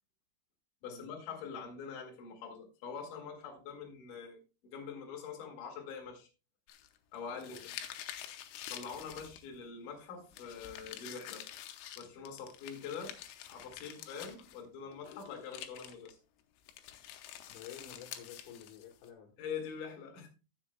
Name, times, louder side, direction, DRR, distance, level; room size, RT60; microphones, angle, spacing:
voice 1, 0.8-6.3 7.1-7.8 8.7-11.5 12.0-13.2 13.5-16.2 19.4-20.3, left 6 dB, 55° left, 3.1 m, -44 dB
sound 1, 6.7-9.6 10.3-14.7 14.9-16.1 16.7-19.1, left 11 dB, 90° left, 3.3 m, -48 dB
voice 2, 17.5-19.4, left 8 dB, 70° left, 3.7 m, -51 dB
16.0 x 7.4 x 2.2 m
omnidirectional pair, 5.5 m